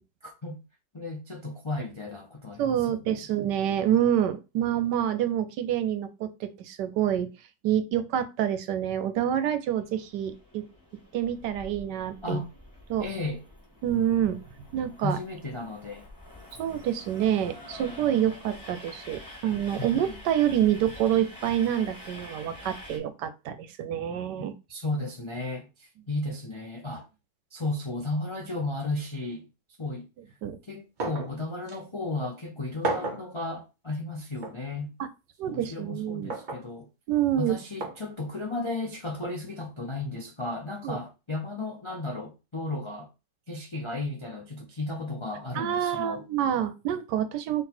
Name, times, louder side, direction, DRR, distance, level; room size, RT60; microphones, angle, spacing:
voice 1, 0.2-0.6 0.9-3.2 12.2-12.5 13.0-13.4 15.0-16.1 19.8-20.2 24.4-27.1 27.5-29.5 29.8-30.1 30.7-34.9 35.5-36.9 37.4-43.1 43.5-46.2, left 2 dB, 40° left, 0.4 m, -34 dB
voice 2, 2.6-7.3 7.6-10.6 11.1-12.4 12.9-13.0 13.8-14.4 14.7-15.2 16.6-24.5 30.4-30.6 35.0-35.1 35.4-36.4 37.1-37.6 40.8-41.0 45.5-47.6, right 10 dB, 75° right, 1.2 m, -27 dB
Train, 9.5-23.0, left 1 dB, 10° left, 1.5 m, -47 dB
sound 1, 31.0-31.3 31.7-31.8 32.8-33.3 34.4-34.6 36.3-36.7 37.8-38.0 39.2-39.4, right 2 dB, 55° right, 0.5 m, -32 dB
4.0 x 3.1 x 4.3 m
omnidirectional pair, 1.9 m